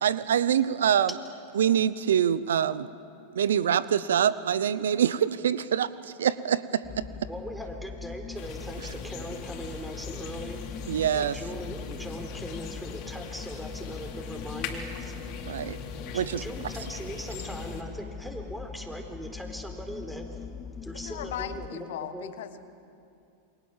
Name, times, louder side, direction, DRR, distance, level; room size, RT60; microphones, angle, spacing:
voice 1, 0.0-1.1 1.6-2.9 3.3-6.8 10.9-11.4 15.5-15.8 16.1-16.4, right 9 dB, 80° right, 17 dB, 0.7 m, -25 dB
sound 1, 6.8-21.7, left 6 dB, 25° left, 0.8 m, -41 dB
voice 2, 7.3-10.6 11.1-15.2 16.0-20.4 20.8-21.9 22.1-22.3, equal, 5° right, 4 dB, 4.2 m, -40 dB
sound 2, 8.3-17.8, left 5 dB, 50° left, 3.6 m, -41 dB
voice 3, 21.0-22.6, left 9 dB, 70° left, 11 dB, 1.4 m, -37 dB
28.5 x 23.5 x 7.4 m, 2.6 s
hypercardioid pair, 95°, 0 cm